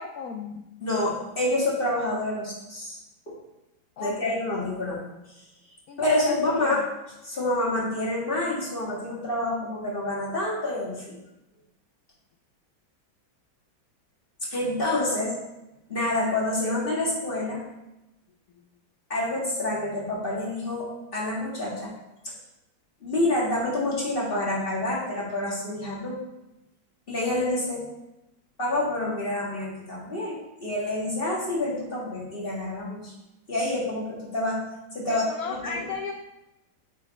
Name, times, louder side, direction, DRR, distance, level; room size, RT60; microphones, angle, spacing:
voice 1, 0.0-0.7 4.0-4.4 5.9-6.4 6.7-6.9 35.1-36.1, left 5 dB, 90° left, 5 dB, 0.8 m, -35 dB
voice 2, 0.8-3.0 3.3-3.4 4.0-5.0 6.0-6.9 7.2-11.2 14.5-15.3 15.9-17.6 19.1-21.9 22.2-22.3 23.0-26.2 27.1-27.9 28.6-33.1 33.5-34.6 34.9-35.7, left 1 dB, 30° left, -4 dB, 1.9 m, -27 dB
8.2 x 5.1 x 4.2 m, 0.94 s
omnidirectional pair, 2.2 m